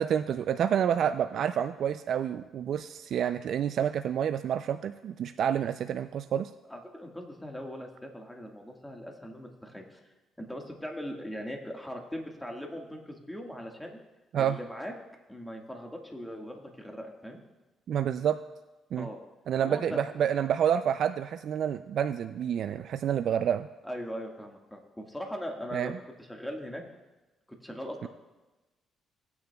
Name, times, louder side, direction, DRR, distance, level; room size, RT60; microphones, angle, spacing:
voice 1, 0.0-6.5 14.3-14.6 17.9-18.4 18.9-19.1 19.5-23.7 25.7-25.9 28.0-28.1, right 9 dB, 65° right, 10 dB, 0.3 m, -28 dB
voice 2, 6.7-10.0 10.4-14.0 14.4-14.9 15.3-17.4 19.0-19.2 19.6-20.0 23.8-26.8 27.6-28.1, equal, 5° left, 1 dB, 1.6 m, -40 dB
18.0 x 9.5 x 2.3 m, 1.1 s
cardioid pair, 90°, 0 cm